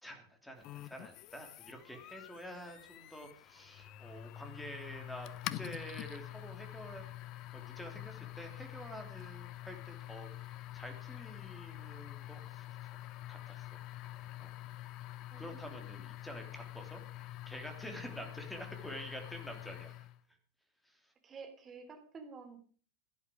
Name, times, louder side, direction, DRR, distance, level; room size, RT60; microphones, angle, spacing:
voice 1, 0.0-7.0 7.5-10.5 10.7-12.6 13.3-13.6 14.4-14.5 15.4-17.0 17.5-19.9, equal, 5° left, 4 dB, 3.2 m, -48 dB
sound 1, 0.6-20.2, left 15 dB, 40° left, 0.7 m, -46 dB
voice 2, 15.3-16.0 18.2-18.3 21.2-22.6, right 4 dB, 20° right, 5 dB, 3.4 m, -51 dB
17.0 x 11.0 x 5.1 m, 0.43 s
figure-of-eight pair, 90°, 0 cm